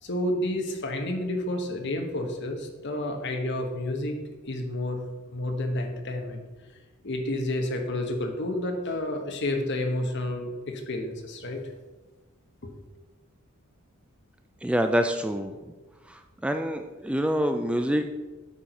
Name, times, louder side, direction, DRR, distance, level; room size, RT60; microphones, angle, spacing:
voice 1, 0.0-5.0 5.3-6.4 7.0-11.6 12.6-12.7, left 1 dB, 55° left, 4 dB, 1.1 m, -30 dB
voice 2, 14.6-15.5 16.1-18.1, equal, 5° right, 6 dB, 0.3 m, -26 dB
8.4 x 4.5 x 5.2 m, 1.2 s
head